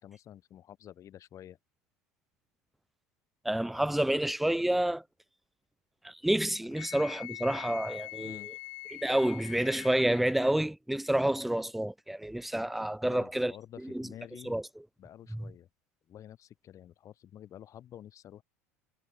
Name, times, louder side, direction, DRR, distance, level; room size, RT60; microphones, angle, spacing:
voice 1, 0.0-1.6 6.6-6.7 8.1-8.5 13.0-14.6 15.0-15.7 16.1-18.4, left 11 dB, 40° left, 4.0 m, -49 dB
voice 2, 3.4-5.0 6.0-8.4 8.9-13.5 13.9-14.1 14.5-14.6 15.3-15.4, right 1 dB, ahead, 0.3 m, -29 dB
Wind instrument woodwind instrument, 6.7-10.4, left 26 dB, 55° left, 1.3 m, -44 dB
figure-of-eight pair, 75°, 8 cm